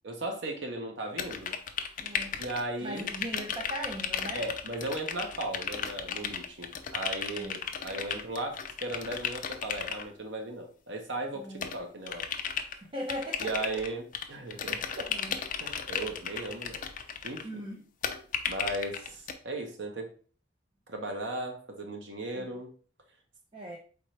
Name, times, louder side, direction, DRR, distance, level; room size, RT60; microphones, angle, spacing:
voice 1, 0.0-1.6 2.4-3.1 4.3-12.3 13.4-15.1 15.6-16.8 17.2-17.6 18.5-20.1 20.9-22.7, right 2 dB, 70° right, 4 dB, 1.0 m, -36 dB
sound 1, 1.2-2.7 3.0-10.0 11.6-12.7 13.1-14.3 14.5-17.4 18.0-19.3, left 7 dB, 45° left, 0.5 m, -35 dB
voice 2, 2.0-2.4 2.8-4.5 7.3-7.5 11.3-11.7 12.8-13.8 15.1-15.4 17.4-17.8 22.3-22.5 23.5-23.8, equal, 30° right, -1 dB, 0.6 m, -39 dB
4.4 x 3.6 x 3.3 m, 0.41 s
head